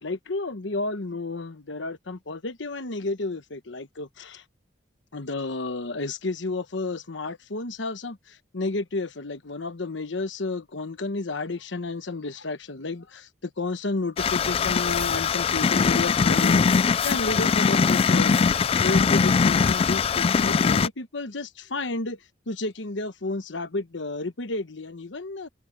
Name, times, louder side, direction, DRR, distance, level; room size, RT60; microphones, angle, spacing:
voice 1, 0.0-4.4 5.1-18.4 18.8-22.2 22.5-25.5, left 3 dB, 75° left, 1.1 m, -31 dB
sound 1, 14.2-20.9, left 5 dB, 30° left, 0.3 m, -21 dB
head